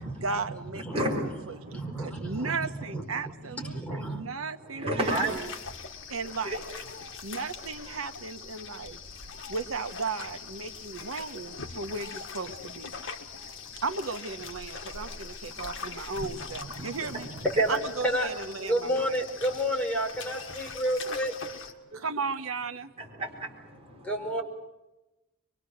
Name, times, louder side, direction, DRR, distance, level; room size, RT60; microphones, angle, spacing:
voice 1, 0.2-1.3 1.6-5.1 6.1-6.6 7.2-9.0 9.5-12.9 13.8-17.3 17.7-19.2 22.0-22.9, right 4 dB, 85° right, 10 dB, 1.2 m, -35 dB
voice 2, 0.9-2.5 4.6-5.9 6.4-7.0 7.9-8.0 8.6-8.7 9.3-9.4 13.4-13.8 15.0-15.1 15.4-15.7 16.4-16.5 17.0-17.7 19.4-19.8 20.1-20.4 21.9-22.0 23.0-24.3, right 1 dB, 30° right, 0 dB, 4.9 m, -35 dB
voice 3, 1.7-4.2 16.1-16.3 16.8-16.9 17.5-17.8 18.0-18.3 18.6-21.4 24.0-24.4, right 1 dB, 5° left, 0 dB, 4.9 m, -30 dB
sound 1, 5.0-21.7, left 5 dB, 65° left, 1.9 m, -42 dB
24.5 x 23.5 x 6.5 m, 1.0 s
head